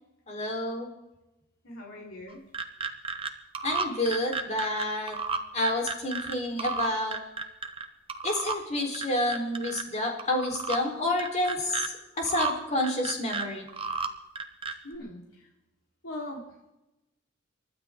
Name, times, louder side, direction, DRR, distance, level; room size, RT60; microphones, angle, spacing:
voice 1, 0.3-0.9 3.6-5.2 5.5-7.2 8.2-13.7, left 1 dB, 35° left, 1 dB, 4.0 m, -29 dB
voice 2, 1.6-2.4 14.8-15.5 16.0-16.4, left 1 dB, 80° left, -3 dB, 4.1 m, -40 dB
sound 1, 2.3-3.3 3.5-6.3 6.6-7.8 8.1-8.6 8.9-9.8 10.2-10.8 11.2-11.9 12.3-12.5 12.8-14.1 14.4-15.0, right 4 dB, 25° right, 1.1 m, -32 dB
29.5 x 12.5 x 3.8 m, 0.96 s
head